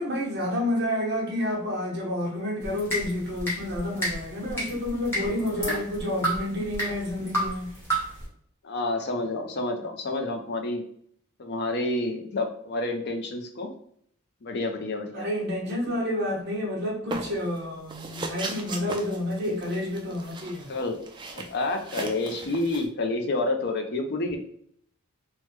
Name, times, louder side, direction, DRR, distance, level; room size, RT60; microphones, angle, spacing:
voice 1, 0.0-7.7 15.1-20.7, left 1 dB, 50° right, 0.9 m, -29 dB
sound 1, 2.6-8.2, right 1 dB, 10° left, 1.0 m, -32 dB
voice 2, 8.6-10.8 11.4-13.7 14.4-15.3 20.7-21.0 21.4-24.4, left 2 dB, 50° left, 0.5 m, -29 dB
sound 2, 17.1-17.6 17.9-22.8, right 3 dB, 20° right, 0.3 m, -37 dB
3.2 x 2.1 x 3.1 m
head